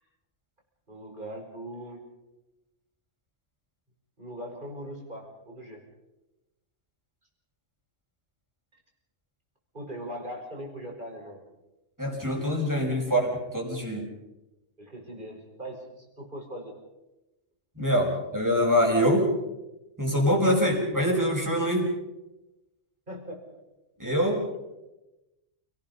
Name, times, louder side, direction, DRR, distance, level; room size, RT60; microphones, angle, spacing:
voice 1, 0.9-2.0 4.2-5.8 9.7-11.4 14.8-16.7 23.1-23.6 24.0-24.1, equal, 40° right, 1 dB, 5.6 m, -40 dB
voice 2, 12.0-14.1 17.8-19.3 20.0-21.9 24.0-24.4, equal, 15° right, -1 dB, 5.8 m, -24 dB
29.5 x 18.5 x 5.5 m, 0.98 s
omnidirectional pair, 1.3 m